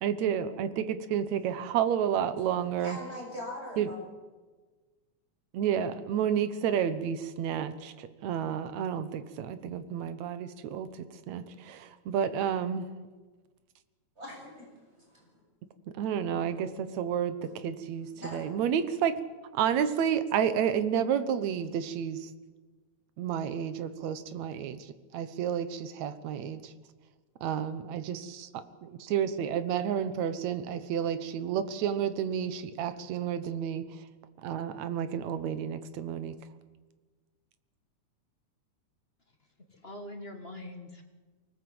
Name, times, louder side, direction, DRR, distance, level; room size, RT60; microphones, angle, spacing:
voice 1, 0.0-3.0 3.8-3.9 5.5-12.9 16.0-19.2 19.5-22.3 23.2-26.7 27.4-34.1 34.4-36.4, right 8 dB, 70° right, 12 dB, 2.3 m, -31 dB
voice 2, 2.5-4.0 14.2-15.3 18.2-18.4, left 1 dB, 20° right, -2 dB, 7.9 m, -42 dB
voice 3, 39.3-41.0, left 1 dB, 30° left, 5 dB, 1.2 m, -44 dB
24.5 x 18.5 x 7.9 m, 1.4 s
omnidirectional pair, 3.5 m